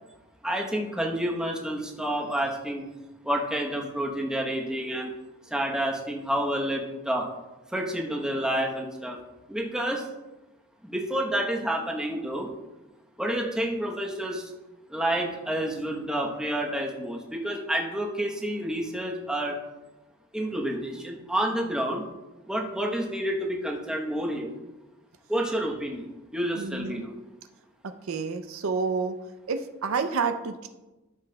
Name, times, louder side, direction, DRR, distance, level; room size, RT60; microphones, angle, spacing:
voice 1, 0.4-2.8 3.2-5.1 5.4-7.3 7.7-9.2 9.5-10.1 10.8-12.5 13.2-14.5 14.9-19.6 20.3-22.0 22.5-24.5 25.3-27.1, right 1 dB, 5° right, -1 dB, 0.9 m, -29 dB
voice 2, 26.6-27.0 28.1-29.1 29.5-30.7, right 5 dB, 70° right, 8 dB, 0.5 m, -29 dB
13.0 x 6.9 x 2.2 m, 1.1 s
head